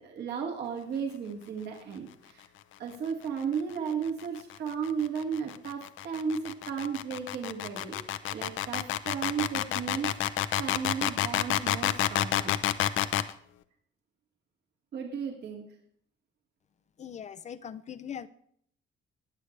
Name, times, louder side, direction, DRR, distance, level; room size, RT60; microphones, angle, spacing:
voice 1, 0.0-2.5 2.8-12.6 14.9-15.6, right 6 dB, 55° right, 1 dB, 2.4 m, -35 dB
sound 1, 4.1-13.3, left 13 dB, 75° left, 0.8 m, -29 dB
voice 2, 17.0-18.3, left 8 dB, 35° left, 13 dB, 0.6 m, -40 dB
21.5 x 8.1 x 3.3 m, 0.65 s
cardioid pair, 165°, 20 cm